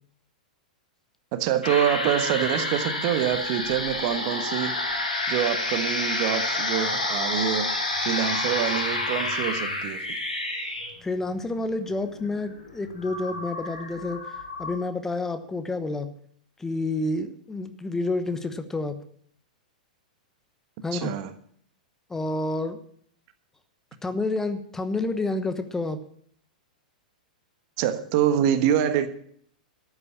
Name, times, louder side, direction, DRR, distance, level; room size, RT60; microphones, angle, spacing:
voice 1, 1.3-4.7 5.3-7.7 8.0-10.1 20.9-21.3 27.8-29.1, right 10 dB, 45° right, 10 dB, 1.3 m, -25 dB
sound 1, 1.6-14.8, left 2 dB, 80° left, 3.2 m, -29 dB
voice 2, 11.0-16.1 16.6-19.0 20.8-21.1 22.1-22.8 24.0-26.0, left 2 dB, 10° left, 9 dB, 1.1 m, -29 dB
13.5 x 8.7 x 7.2 m, 0.63 s
figure-of-eight pair, 100°, 4 cm